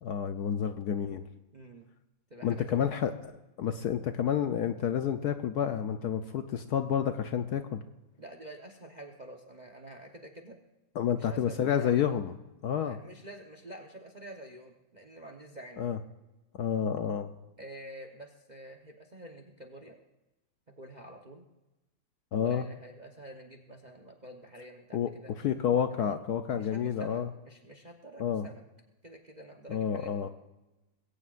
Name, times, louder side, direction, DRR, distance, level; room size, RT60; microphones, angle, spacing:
voice 1, 0.0-1.2 2.4-3.3 3.6-7.8 11.0-12.3 12.6-13.0 15.8-16.0 16.5-17.3 22.3-22.7 24.9-25.1 25.4-27.3 28.2-28.5 29.7-30.3, left 8 dB, 70° left, 8 dB, 1.0 m, -29 dB
voice 2, 1.5-1.9 2.3-2.8 8.2-10.6 11.1-12.0 12.9-15.8 17.6-20.0 20.8-21.5 22.4-25.5 26.0-26.2 26.5-28.6 29.0-30.3, right 1 dB, 35° right, 4 dB, 0.8 m, -48 dB
21.0 x 17.0 x 2.5 m, 1.0 s
omnidirectional pair, 2.1 m